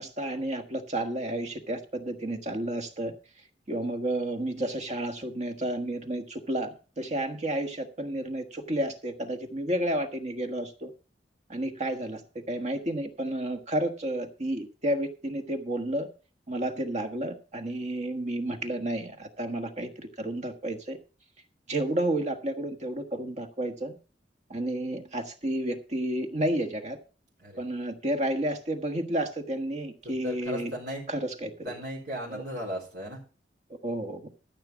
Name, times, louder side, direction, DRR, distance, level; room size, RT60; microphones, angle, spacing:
voice 1, 0.0-3.1 3.7-10.9 11.5-16.1 16.5-21.0 21.7-24.0 24.5-27.0 27.6-30.7 31.1-31.7 32.3-32.4 33.8-34.3, right 1 dB, 40° right, 6 dB, 1.4 m, -31 dB
voice 2, 30.2-31.0 31.6-33.2, equal, 70° right, -3 dB, 4.1 m, -36 dB
13.5 x 7.2 x 5.1 m, 0.35 s
head